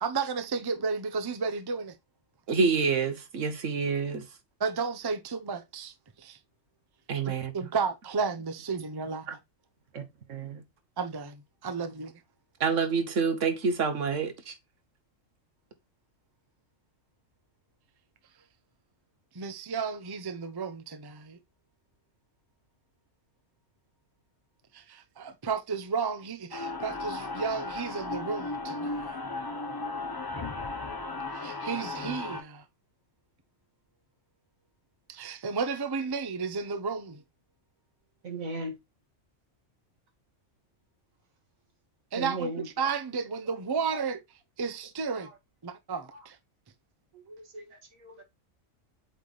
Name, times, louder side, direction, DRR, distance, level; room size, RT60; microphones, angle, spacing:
voice 1, 0.0-1.9 4.6-6.4 7.3-9.4 11.0-12.2 19.3-21.4 24.7-29.1 31.3-32.6 35.1-37.2 42.1-42.5 42.8-44.2 44.6-45.3 45.6-46.4, right 5 dB, 25° right, 0.6 m, -33 dB
voice 2, 2.5-4.3 7.1-7.5 9.9-10.6 12.6-14.6, right 5 dB, 65° right, 1.5 m, -28 dB
sound 1, 26.5-32.4, left 3 dB, 20° left, 0.8 m, -35 dB
voice 3, 38.2-38.8 42.2-42.7 45.2-45.3 46.1-46.3 47.1-48.2, right 2 dB, 85° right, 2.1 m, -38 dB
8.1 x 3.4 x 4.0 m
omnidirectional pair, 1.4 m